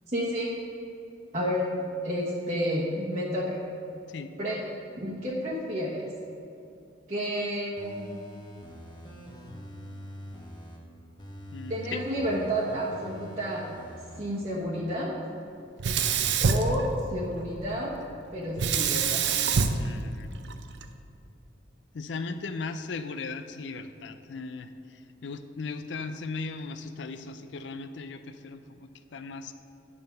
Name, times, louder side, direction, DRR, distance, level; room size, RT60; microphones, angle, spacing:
voice 1, 0.1-0.5 1.3-1.6 2.0-3.6 4.4-4.6 5.0-6.1 7.1-8.1 11.7-13.6 14.2-15.1 16.4-16.9 17.1-17.9 18.3-19.2, equal, 40° right, -7 dB, 1.2 m, -30 dB
sound 1, 7.8-10.8 11.2-14.2 14.6-14.7, equal, 25° left, 1.0 m, -44 dB
voice 2, 11.5-12.0 19.8-20.3 21.9-29.5, left 4 dB, 75° left, 10 dB, 0.5 m, -37 dB
Sink (filling or washing), 15.8-17.4 18.6-20.8, right 5 dB, 70° right, 0.5 m, -26 dB
9.7 x 5.4 x 5.7 m, 2.7 s
head